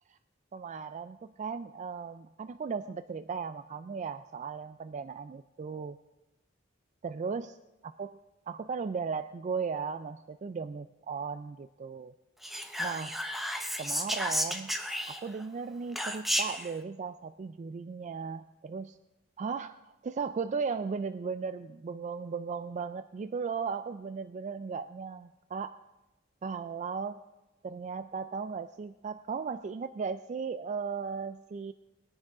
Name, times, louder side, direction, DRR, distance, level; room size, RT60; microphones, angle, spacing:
voice 1, 0.5-6.0 7.0-7.6 7.8-8.2 8.5-12.1 12.8-13.2 13.8-14.7 15.1-19.0 19.4-19.8 20.0-25.8 26.4-27.2 27.6-31.7, right 5 dB, 40° right, 11 dB, 0.3 m, -36 dB
Whispering, 12.4-15.4 15.9-16.7, equal, ahead, 0.8 m, -32 dB
20.5 x 9.9 x 3.7 m, 1.0 s
head